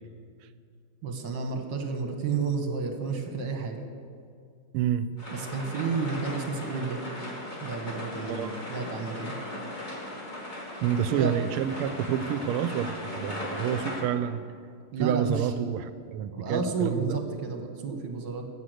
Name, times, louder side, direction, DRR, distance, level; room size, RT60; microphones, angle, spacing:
voice 1, 1.0-3.8 5.3-7.0 7.6-9.3 11.1-11.3 14.9-15.5 16.3-18.4, right 4 dB, 60° right, 4 dB, 1.7 m, -31 dB
voice 2, 4.7-5.1 8.3-8.6 10.8-14.4 15.0-17.1, right 9 dB, 85° right, 13 dB, 1.5 m, -28 dB
sound 1, 5.2-14.0, left 1 dB, 20° left, 2.5 m, -38 dB
15.0 x 6.5 x 7.8 m, 2.2 s
omnidirectional pair, 2.4 m